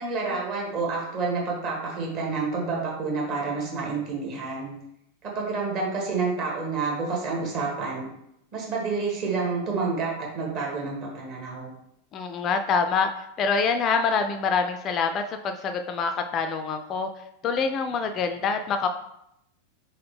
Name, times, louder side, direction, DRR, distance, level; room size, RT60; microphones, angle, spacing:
voice 1, 0.0-4.7 5.2-8.1 8.5-11.7, right 4 dB, 40° right, -2 dB, 1.5 m, -29 dB
voice 2, 12.1-13.1 13.4-17.1 17.4-18.9, left 5 dB, 30° left, 7 dB, 0.3 m, -25 dB
4.1 x 3.9 x 3.2 m, 0.80 s
figure-of-eight pair, 90°, 0 cm